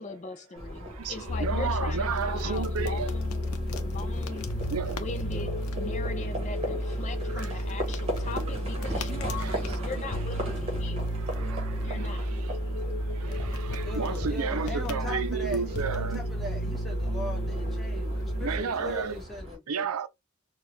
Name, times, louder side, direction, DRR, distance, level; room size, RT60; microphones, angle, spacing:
voice 1, 0.0-3.4 3.8-4.5 5.0-11.1 11.8-12.3, left 3 dB, 30° left, 0.5 m, -40 dB
Livestock farm animals working animals, 0.6-19.5, equal, 25° right, 1.4 m, -40 dB
voice 2, 0.8-3.1 4.7-5.0 7.3-7.6 8.3-8.4 8.9-9.9 10.4-10.6 11.1-16.3 18.4-19.2 19.7-20.1, right 6 dB, 75° right, 0.5 m, -34 dB
sound 1, 1.0-19.2, left 4 dB, 75° left, 0.7 m, -46 dB
sound 2, 1.3-18.6, equal, 50° left, 1.0 m, -32 dB
voice 3, 13.8-19.8, left 1 dB, ahead, 1.2 m, -40 dB
4.4 x 2.3 x 3.3 m
head